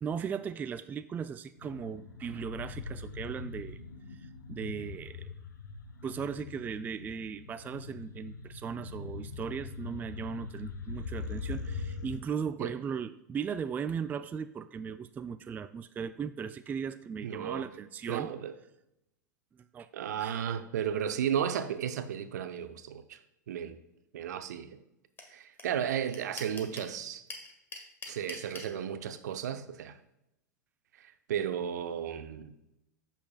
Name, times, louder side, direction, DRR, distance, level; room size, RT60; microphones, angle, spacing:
voice 1, 0.0-3.8 4.1-5.3 6.0-18.3 19.7-19.9 20.2-20.5, right 7 dB, 20° right, 0.3 m, -37 dB
sound 1, 1.6-12.2, left 4 dB, 80° left, 1.0 m, -42 dB
voice 2, 17.2-17.7 18.1-18.5 19.9-23.2 23.5-23.8 24.1-24.8 25.3-27.2 28.1-30.0 31.0-32.5, right 9 dB, 65° right, 0.7 m, -34 dB
sound 2, 25.2-25.3 25.6-25.7 25.9-26.9 27.3-28.7, left 3 dB, 20° left, 1.6 m, -42 dB
14.5 x 5.8 x 2.4 m
figure-of-eight pair, 95°, 10 cm